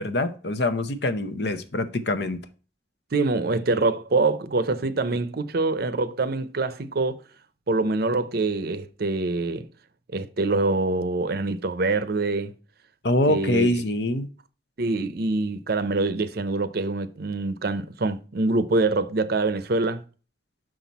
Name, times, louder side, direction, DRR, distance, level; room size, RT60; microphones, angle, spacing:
voice 1, 0.0-2.4 13.0-14.3, left 1 dB, 65° left, 0.8 m, -24 dB
voice 2, 3.1-7.2 7.7-9.7 10.1-12.5 13.3-13.7 14.8-20.0, right 3 dB, 60° right, 0.6 m, -25 dB
6.4 x 5.9 x 4.1 m
head